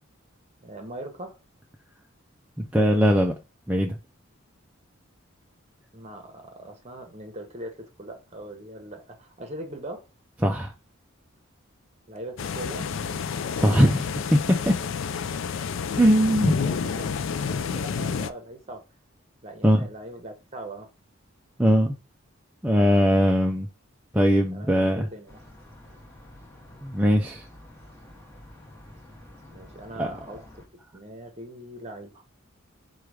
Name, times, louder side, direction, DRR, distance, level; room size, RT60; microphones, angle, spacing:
voice 1, 0.6-1.4 5.9-10.0 12.1-12.9 16.2-16.3 16.6-17.1 17.5-18.8 19.4-20.9 24.5-25.4 29.5-30.6 30.9-32.2, right 1 dB, 30° right, 0.9 m, -40 dB
voice 2, 2.6-3.3 3.7-4.0 10.4-10.7 13.6-14.7 16.0-16.6 19.6-19.9 21.6-22.0 22.6-23.7 24.1-25.1 26.8-27.5 30.0-30.1, equal, 5° right, 0.3 m, -20 dB
sound 1, 12.4-18.3, left 6 dB, 65° left, 0.4 m, -29 dB
sound 2, 25.3-30.6, left 1 dB, 10° left, 0.9 m, -49 dB
4.7 x 2.3 x 4.7 m
head